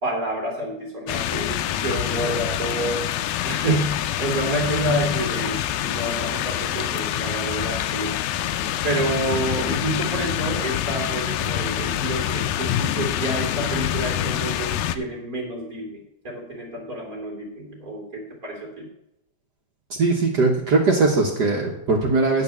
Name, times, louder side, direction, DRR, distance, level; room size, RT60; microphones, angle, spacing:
voice 1, 0.0-3.1 3.4-8.1 8.8-18.9, right 1 dB, 30° right, -1 dB, 2.6 m, -28 dB
sound 1, 1.1-15.0, left 11 dB, 80° left, 1.9 m, -26 dB
voice 2, 19.9-22.4, right 3 dB, 65° right, 0 dB, 1.0 m, -20 dB
10.0 x 4.9 x 7.3 m, 0.84 s
omnidirectional pair, 3.5 m